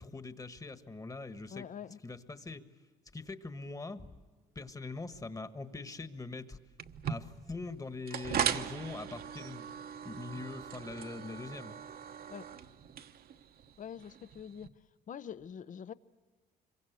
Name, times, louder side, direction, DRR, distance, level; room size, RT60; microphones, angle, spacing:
voice 1, 0.0-1.7 2.0-2.7 3.1-4.1 4.5-6.6 7.1-11.8, left 3 dB, 20° left, 1.5 m, -43 dB
voice 2, 1.5-2.0 12.3-12.5 13.8-14.7 15.1-15.9, left 8 dB, 45° left, 0.8 m, -44 dB
sound 1, 6.8-14.7, right 8 dB, 60° right, 1.2 m, -39 dB
26.0 x 23.5 x 8.2 m
cardioid pair, 100°, 18 cm